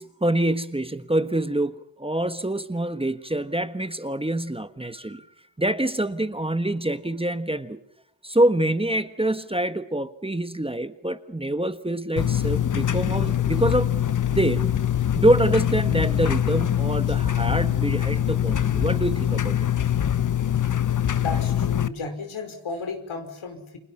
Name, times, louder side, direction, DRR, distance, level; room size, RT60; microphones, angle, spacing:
voice 1, 0.0-5.3 5.6-7.8 8.2-13.9 14.3-14.7 15.1-19.7, right 1 dB, 10° right, 10 dB, 1.4 m, -25 dB
sound 1, 12.2-21.9, left 10 dB, 40° left, 1.0 m, -23 dB
voice 2, 21.2-23.8, left 4 dB, 85° left, 6 dB, 5.4 m, -33 dB
30.0 x 26.5 x 5.7 m, 0.69 s
wide cardioid pair, 100°, 47 cm